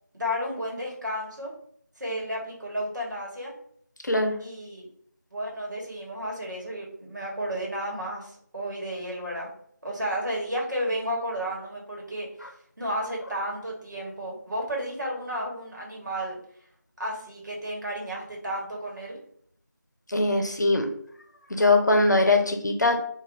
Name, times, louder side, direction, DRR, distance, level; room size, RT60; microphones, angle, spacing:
voice 1, 0.1-1.5 2.0-3.5 4.4-4.9 5.3-9.5 9.8-12.3 12.8-16.4 17.0-19.2, equal, 75° right, -2 dB, 1.2 m, -32 dB
voice 2, 4.0-4.3 20.1-20.9 21.5-23.0, left 2 dB, 70° left, 4 dB, 0.6 m, -21 dB
2.5 x 2.4 x 3.3 m, 0.64 s
figure-of-eight pair, 170°, 10 cm